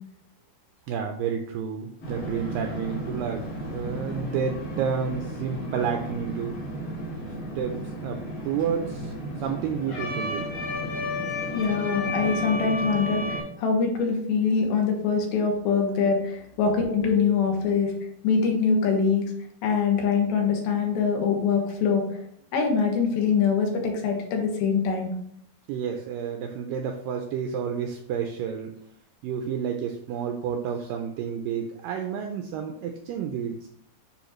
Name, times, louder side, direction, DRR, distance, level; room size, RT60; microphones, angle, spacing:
voice 1, 0.9-3.5 3.7-6.6 7.6-7.8 8.0-10.5 25.7-28.7 29.2-33.7, right 7 dB, 85° right, 4 dB, 2.0 m, -30 dB
sound 1, 2.0-13.4, equal, 60° left, 4.0 m, -33 dB
voice 2, 11.5-17.9 18.2-19.3 19.6-22.2 22.5-25.1, left 5 dB, 80° left, 1 dB, 3.0 m, -24 dB
9.5 x 3.5 x 3.0 m, 0.69 s
omnidirectional pair, 4.5 m